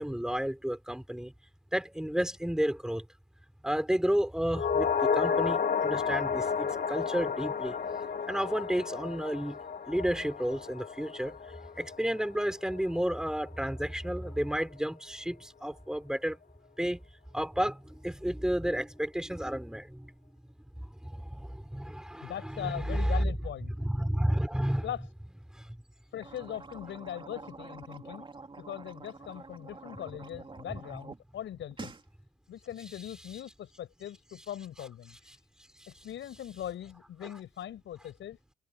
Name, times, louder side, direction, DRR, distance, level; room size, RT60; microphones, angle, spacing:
voice 1, 0.0-1.3 1.7-3.1 3.6-7.8 8.3-9.6 9.9-11.4 11.8-16.4 16.8-17.0 17.3-20.1 20.8-23.3 23.8-24.8 25.5-25.8 35.8-35.9, equal, 5° right, 5.9 m, -31 dB
sound 1, 4.5-13.0 13.3-13.4, left 6 dB, 45° left, 2.4 m, -32 dB
voice 2, 22.2-23.7 24.8-25.1 26.1-28.3 28.6-31.9 32.5-35.4 35.9-38.4, left 11 dB, 70° left, 6.6 m, -40 dB
sound 2, 26.1-31.2 31.5-32.0, right 3 dB, 25° right, 3.0 m, -47 dB
cardioid pair, 90°, 20 cm